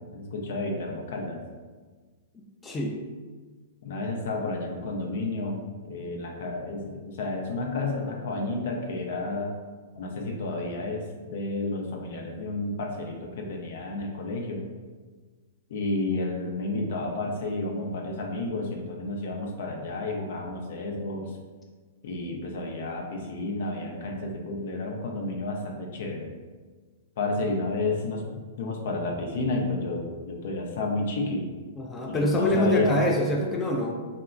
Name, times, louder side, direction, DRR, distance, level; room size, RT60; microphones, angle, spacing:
voice 1, 0.1-1.4 3.8-9.5 9.9-14.6 15.7-21.3 22.0-26.3 27.2-31.5 32.1-33.0, left 2 dB, 65° left, 1 dB, 0.5 m, -31 dB
voice 2, 2.6-2.9 31.8-33.9, left 1 dB, 15° left, -1 dB, 0.4 m, -25 dB
3.6 x 2.1 x 2.5 m, 1.4 s
hypercardioid pair, 125°, 0 cm